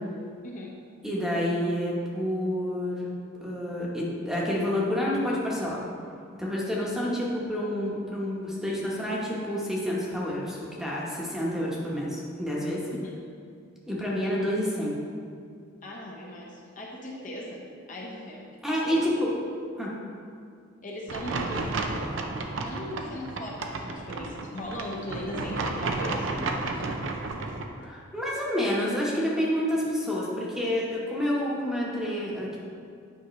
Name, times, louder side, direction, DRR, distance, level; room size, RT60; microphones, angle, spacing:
voice 1, 1.0-3.1 3.4-5.8 6.4-12.8 13.9-15.0 18.6-19.3 19.8-19.9 27.8-32.6, equal, ahead, -5 dB, 1.1 m, -28 dB
voice 2, 15.8-17.6 17.9-19.1 20.8-22.1 22.6-27.0, left 1 dB, 40° left, -3 dB, 0.9 m, -38 dB
sound 1, 21.1-27.6, right 3 dB, 70° right, 0.6 m, -32 dB
9.2 x 5.7 x 3.1 m, 2.4 s
head